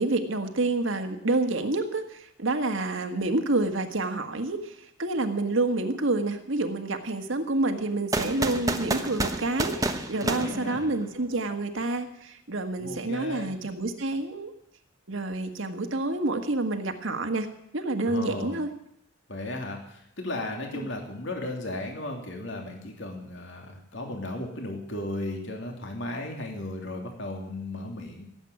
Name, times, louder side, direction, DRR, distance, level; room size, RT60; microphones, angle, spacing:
voice 1, 0.0-4.7 5.0-14.5 15.1-17.5 17.7-18.7, right 2 dB, 65° right, 6 dB, 1.7 m, -28 dB
sound 1, 8.1-11.3, right 2 dB, 15° right, 1.0 m, -30 dB
voice 2, 10.3-10.9 12.8-13.7 18.1-18.6 19.3-28.2, left 1 dB, 60° left, 2 dB, 2.9 m, -35 dB
17.5 x 8.1 x 9.7 m, 0.76 s
head